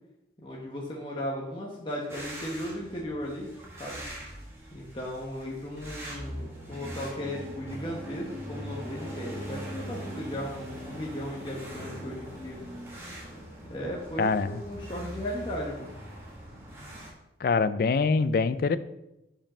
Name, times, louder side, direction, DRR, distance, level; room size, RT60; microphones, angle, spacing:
voice 1, 0.4-3.5 3.8-4.0 4.7-12.6 13.7-15.9, equal, 25° left, -3 dB, 1.0 m, -36 dB
sound 1, 2.1-17.1, equal, 15° right, 1.6 m, -41 dB
voice 2, 14.2-14.5 17.4-18.8, left 4 dB, 55° left, 14 dB, 0.3 m, -24 dB
5.3 x 5.0 x 5.4 m, 0.90 s
head